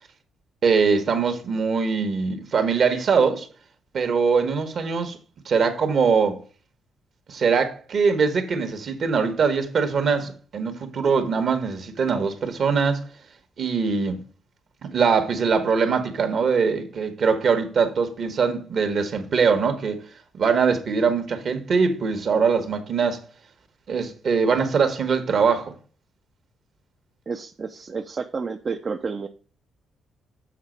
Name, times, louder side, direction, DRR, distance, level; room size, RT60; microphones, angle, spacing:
voice 1, 0.6-3.5 3.9-5.2 5.4-6.4 7.3-13.0 13.6-14.2 14.8-20.0 20.3-23.2 23.9-25.7, right 5 dB, 55° right, 1.2 m, -22 dB
voice 2, 27.3-29.3, right 5 dB, 40° right, 0.4 m, -30 dB
7.2 x 4.0 x 5.1 m
cardioid pair, 90°, 0 cm